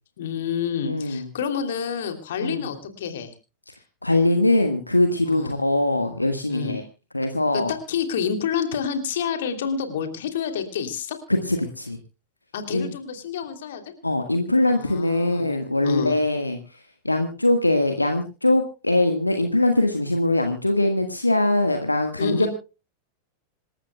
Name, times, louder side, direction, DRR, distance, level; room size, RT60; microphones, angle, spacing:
voice 1, 0.2-3.3 5.2-5.5 6.5-6.8 7.5-11.2 12.5-13.8 14.7-15.5 15.8-16.2 22.2-22.5, left 7 dB, 60° left, 7 dB, 2.9 m, -28 dB
voice 2, 0.8-1.3 2.4-2.6 4.0-6.8 7.1-7.7 11.5-12.0 12.7-12.9 14.0-16.6 17.0-22.5, left 2 dB, 85° left, 6 dB, 1.5 m, -22 dB
26.5 x 13.5 x 2.3 m, 0.32 s
figure-of-eight pair, 90°, 0 cm